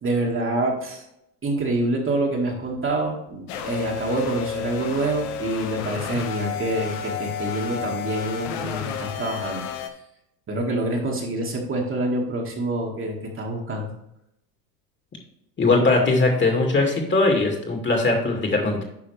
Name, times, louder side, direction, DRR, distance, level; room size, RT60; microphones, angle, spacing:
voice 1, 0.0-1.0 1.4-9.7 10.5-13.9, right 2 dB, 25° right, -1 dB, 2.0 m, -26 dB
sound 1, 3.5-9.9, left 8 dB, 50° left, 1.1 m, -31 dB
voice 2, 15.6-18.8, left 3 dB, 25° left, 2 dB, 2.2 m, -20 dB
9.9 x 5.6 x 3.3 m, 0.80 s
hypercardioid pair, 90°, 49 cm